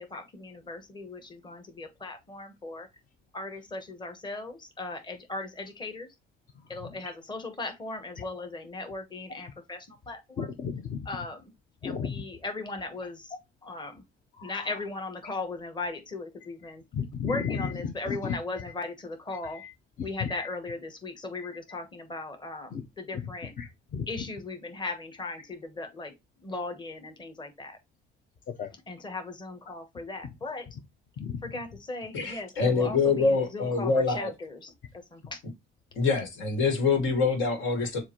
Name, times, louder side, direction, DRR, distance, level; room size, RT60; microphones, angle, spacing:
voice 1, 0.0-2.9 3.3-6.1 6.7-10.5 11.0-11.5 11.8-13.3 13.6-14.0 14.4-16.8 17.3-19.6 20.0-23.5 24.1-26.1 26.4-27.8 28.9-30.7 31.4-35.4, left 3 dB, 25° left, 1.2 m, -38 dB
voice 2, 6.5-6.9 8.2-8.3 10.4-11.1 11.8-12.2 14.3-14.8 16.9-18.4 19.5-19.7 20.0-20.5 22.7-22.8 23.1-23.2 23.6-24.1 28.6-28.7 31.2-31.4, left 6 dB, 45° left, 0.7 m, -34 dB
voice 3, 32.1-34.3 35.9-38.0, left 4 dB, 80° left, 1.8 m, -25 dB
6.9 x 2.6 x 3.0 m
cardioid pair, 105°, 20 cm